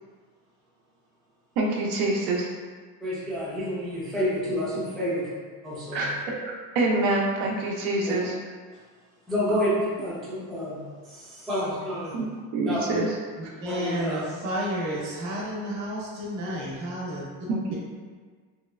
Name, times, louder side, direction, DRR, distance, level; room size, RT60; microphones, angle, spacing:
voice 1, 1.6-2.5 5.9-6.1 6.4-8.4 12.1-12.3 12.5-13.1 13.4-13.5 17.5-17.7, right 2 dB, 80° right, -1 dB, 0.6 m, -26 dB
voice 2, 3.0-5.3 5.6-6.0 8.1-8.2 9.3-12.2 12.7-12.8 13.6-14.2, equal, ahead, -10 dB, 0.4 m, -29 dB
voice 3, 13.6-17.2, equal, 45° right, -5 dB, 1.0 m, -31 dB
3.1 x 3.0 x 2.3 m, 1.6 s
cardioid pair, 175°, 39 cm